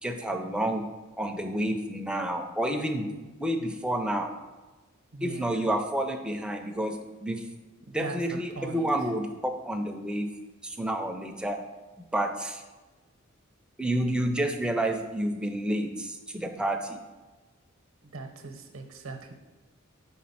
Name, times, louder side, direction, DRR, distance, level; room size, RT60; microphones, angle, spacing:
voice 1, 0.0-0.9 1.2-3.1 3.4-4.3 5.2-7.4 7.9-10.3 10.6-11.6 12.1-12.6 13.8-17.0, right 1 dB, 5° right, 4 dB, 0.4 m, -29 dB
voice 2, 5.1-5.7 7.9-8.9 18.1-19.3, right 3 dB, 80° right, 4 dB, 0.8 m, -40 dB
4.6 x 4.2 x 5.6 m, 1.2 s
head